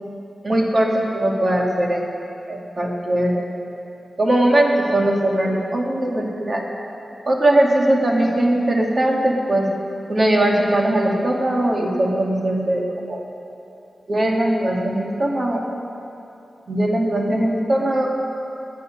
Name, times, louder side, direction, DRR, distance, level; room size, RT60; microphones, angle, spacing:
voice 1, 0.4-2.0 2.5-3.5 4.2-6.6 7.3-9.7 10.1-13.2 14.1-15.6 16.7-18.1, right 1 dB, 35° right, -1 dB, 2.1 m, -20 dB
18.5 x 10.0 x 6.6 m, 2.7 s
wide cardioid pair, 155°, 0 cm